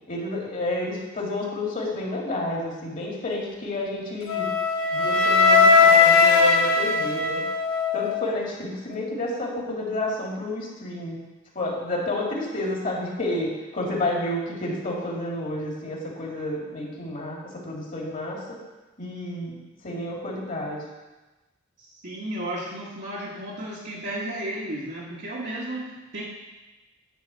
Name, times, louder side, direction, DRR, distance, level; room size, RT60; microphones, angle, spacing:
voice 1, 0.1-4.5 4.9-7.4 7.9-11.2 11.5-18.6 19.0-19.6 19.8-20.8, left 1 dB, 40° left, -3 dB, 2.3 m, -30 dB
Wind instrument woodwind instrument, 4.3-8.3, left 4 dB, 80° left, 1.2 m, -19 dB
voice 2, 21.8-26.2, right 1 dB, 55° right, -7 dB, 1.4 m, -33 dB
10.5 x 3.9 x 7.5 m, 1.1 s
head